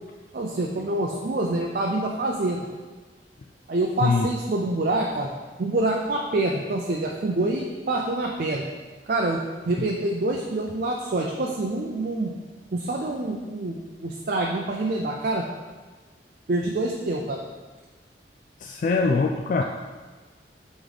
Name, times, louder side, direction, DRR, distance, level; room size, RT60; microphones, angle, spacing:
voice 1, 0.3-2.6 3.7-5.3 5.6-8.7 9.1-9.4 9.7-12.3 12.7-15.4 16.5-17.4, right 2 dB, 50° right, 0 dB, 0.5 m, -26 dB
voice 2, 18.6-19.6, left 4 dB, 45° left, 2 dB, 0.3 m, -22 dB
8.0 x 3.1 x 4.0 m, 1.4 s
head